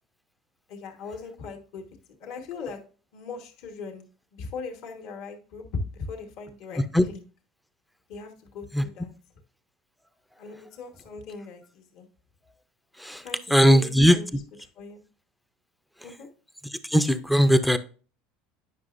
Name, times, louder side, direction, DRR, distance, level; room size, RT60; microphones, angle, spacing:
voice 1, 0.7-1.9 2.2-2.8 3.1-4.0 4.3-7.2 8.1-9.1 10.4-12.1 13.2-14.4 14.7-15.0 16.0-16.3, left 4 dB, 50° left, 3 dB, 1.3 m, -39 dB
voice 2, 13.5-14.2 16.9-17.8, equal, ahead, 11 dB, 0.4 m, -18 dB
9.4 x 5.9 x 2.5 m, 0.39 s
cardioid pair, 165°, 0 cm